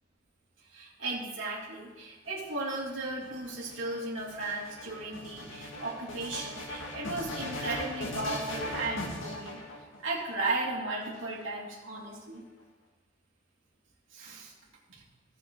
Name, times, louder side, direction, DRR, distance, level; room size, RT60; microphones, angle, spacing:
voice 1, 0.7-9.6 10.0-12.4 14.1-14.5 14.9-15.0, right 2 dB, 80° right, -6 dB, 2.7 m, -35 dB
sound 1, 2.3-10.2 11.0-11.9, left 1 dB, 75° left, 2.0 m, -39 dB
15.0 x 6.8 x 3.9 m, 1.1 s
head